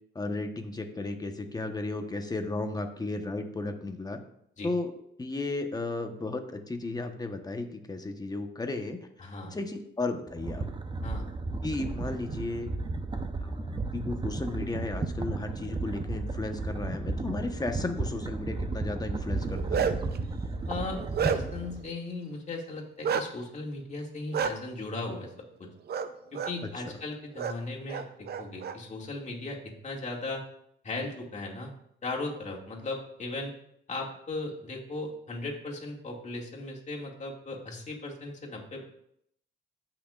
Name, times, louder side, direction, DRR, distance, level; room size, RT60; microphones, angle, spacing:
voice 1, 0.1-4.2 4.6-4.9 5.2-10.6 11.6-12.7 13.4-20.0 26.8-27.0, left 2 dB, 20° left, 5 dB, 1.1 m, -34 dB
voice 2, 9.2-9.6 11.0-11.3 20.7-21.0 21.2-25.3 25.6-25.7 26.3-30.4 30.8-31.7 32.0-33.5 33.9-38.8, left 2 dB, 35° left, -1 dB, 2.3 m, -37 dB
sound 1, 10.3-21.8, right 3 dB, 25° right, 0.8 m, -34 dB
Bark, 19.4-20.2 20.7-21.7 23.0-23.3 24.3-24.5 25.9-26.1 26.3-26.5 27.4-27.5 27.9-28.7, right 7 dB, 55° right, 0.6 m, -29 dB
15.5 x 6.0 x 2.5 m, 0.73 s
cardioid pair, 90°, 20 cm